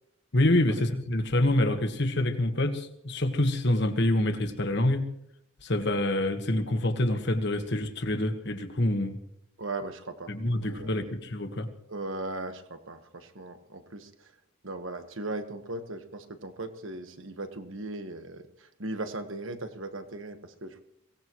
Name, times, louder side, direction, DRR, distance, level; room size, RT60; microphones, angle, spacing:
voice 1, 0.3-5.1 5.6-9.2 10.3-11.7, left 1 dB, 55° left, 7 dB, 1.5 m, -26 dB
voice 2, 9.6-11.1 11.9-14.3 14.6-20.8, right 2 dB, 70° right, 8 dB, 1.4 m, -38 dB
23.5 x 18.0 x 3.1 m, 0.77 s
head